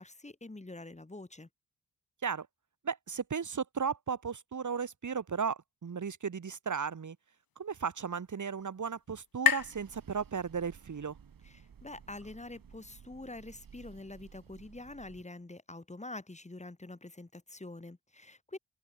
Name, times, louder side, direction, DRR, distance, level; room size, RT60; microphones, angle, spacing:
voice 1, 0.0-1.5 11.4-18.6, left 2 dB, 20° left, 6.5 m, -46 dB
voice 2, 2.8-7.2 7.6-11.2, right 6 dB, 55° right, 3.1 m, -35 dB
sound 1, 7.1-10.9, left 8 dB, 85° left, 3.3 m, -36 dB
sound 2, 9.6-15.2, right 7 dB, 75° right, 5.5 m, -56 dB
open air
wide cardioid pair, 110°, 35 cm